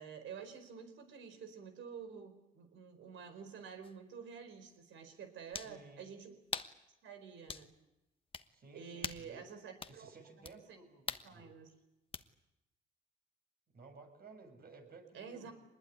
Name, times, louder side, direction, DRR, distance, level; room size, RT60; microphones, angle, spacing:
voice 1, 0.0-6.4 7.0-7.7 8.7-10.1 10.4-10.8 11.2-11.7 15.1-15.5, right 6 dB, 75° right, 8 dB, 4.6 m, -49 dB
sound 1, 3.8-3.9 5.5-5.8 6.5-6.8 7.5-7.7 8.3-8.5 9.0-9.3 9.8-10.0 10.4-10.6 11.1-11.3 12.1-12.3, left 4 dB, 25° left, 1.3 m, -42 dB
voice 2, 5.6-6.1 8.5-9.4 9.9-11.5 13.7-15.5, right 3 dB, 50° right, 5 dB, 6.8 m, -56 dB
24.5 x 20.5 x 9.4 m, 0.95 s
cardioid pair, 90°, 20 cm